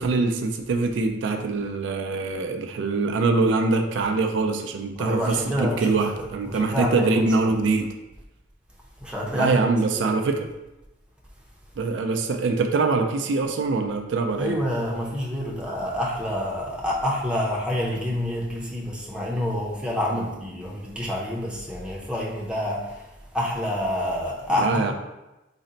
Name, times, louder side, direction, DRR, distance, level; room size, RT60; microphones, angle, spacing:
voice 1, 0.0-7.9 9.3-10.5 11.8-14.6 24.6-24.9, right 3 dB, 70° right, 4 dB, 0.3 m, -23 dB
voice 2, 5.0-5.9 6.4-7.7 9.0-9.6 10.0-10.3 14.4-24.9, left 1 dB, 5° right, -4 dB, 0.6 m, -28 dB
4.0 x 2.1 x 3.8 m, 0.99 s
head